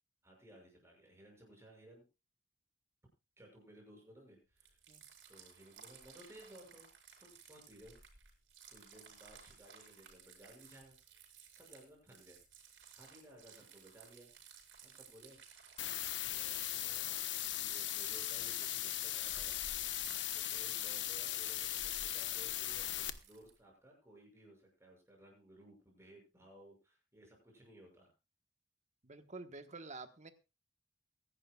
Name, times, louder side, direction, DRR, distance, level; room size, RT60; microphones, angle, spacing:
voice 1, 0.2-2.0 3.4-4.8 5.3-6.9 7.2-8.0 8.7-12.4 12.9-14.3 14.8-15.4 16.2-19.6 20.0-28.1, right 1 dB, 15° right, 0 dB, 6.5 m, -59 dB
sound 1, 4.6-23.6, right 5 dB, 80° right, 5.0 m, -58 dB
sound 2, 15.8-23.1, left 13 dB, 70° left, 1.0 m, -38 dB
voice 2, 29.0-30.3, right 3 dB, 40° right, 9 dB, 1.3 m, -49 dB
23.0 x 11.5 x 2.4 m, 0.28 s
head